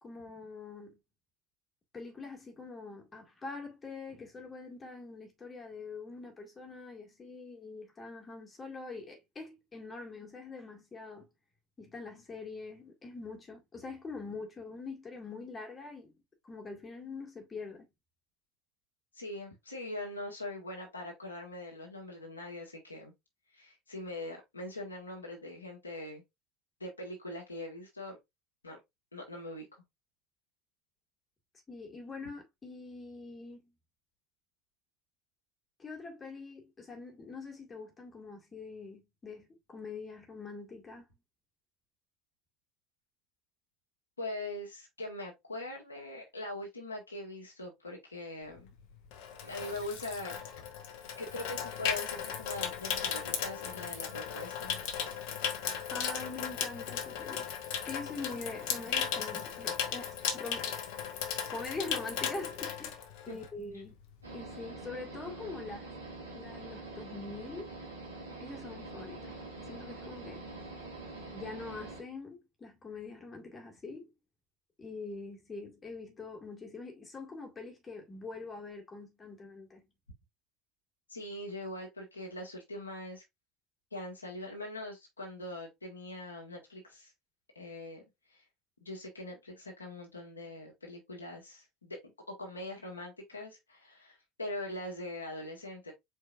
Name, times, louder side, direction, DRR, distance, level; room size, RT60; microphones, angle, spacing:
voice 1, 0.0-1.0 1.9-11.3 11.8-16.1 16.4-17.9 31.7-33.7 35.8-41.1 55.9-57.5 57.9-60.8 61.5-64.0 64.3-65.9 66.3-67.8 68.4-69.4 69.7-70.5 71.3-74.1 74.8-79.9, left 3 dB, 25° left, 2.0 m, -44 dB
voice 2, 19.1-23.1 23.5-26.2 26.8-28.2 28.6-28.8 29.1-29.8 44.2-48.7 49.4-50.4 51.2-54.8 63.3-63.4 81.1-83.2 83.9-87.1 87.5-88.4 88.8-95.9, left 1 dB, 85° left, 1.6 m, -42 dB
Water tap faucet / Sink (filling or washing), 48.6-63.6 63.9-64.2, left 8 dB, 60° left, 1.0 m, -36 dB
sound 1, 64.2-72.0, right 2 dB, 90° right, 1.8 m, -45 dB
4.7 x 4.5 x 2.5 m
figure-of-eight pair, 70°, 0 cm